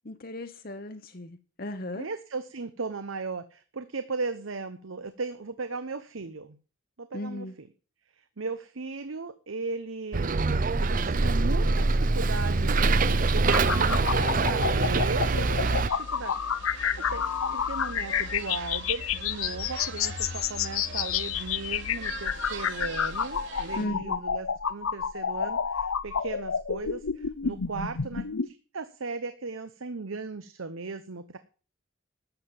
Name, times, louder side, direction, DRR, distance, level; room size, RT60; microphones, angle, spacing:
voice 1, 0.0-2.1 7.1-7.5 23.7-24.2, left 1 dB, 45° left, 0.9 m, -36 dB
voice 2, 1.9-6.6 7.0-7.7 8.1-10.5 10.8-16.6 17.0-17.2 17.5-31.4, right 4 dB, 75° right, 0.9 m, -37 dB
Bus, 10.1-15.9, right 3 dB, 40° right, 0.6 m, -24 dB
sound 1, 12.8-23.8, right 4 dB, 60° right, 4.0 m, -44 dB
sound 2, 13.5-28.5, left 7 dB, 85° left, 0.7 m, -30 dB
12.5 x 7.6 x 7.1 m
head